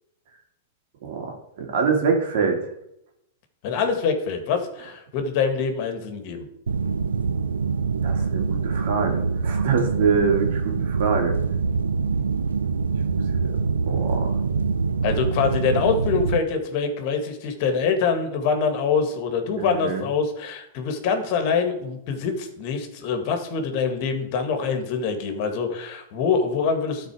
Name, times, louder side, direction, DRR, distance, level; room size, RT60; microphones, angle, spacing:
voice 1, 1.0-2.6 8.0-11.4 13.1-13.2 13.9-14.4 19.6-20.0, right 5 dB, 65° right, 2 dB, 2.4 m, -25 dB
voice 2, 3.6-6.5 15.0-27.1, left 5 dB, 50° left, 6 dB, 1.8 m, -25 dB
sound 1, 6.7-16.4, right 5 dB, 90° right, 0.5 m, -24 dB
12.5 x 4.4 x 4.8 m, 0.79 s
hypercardioid pair, 110°, 0 cm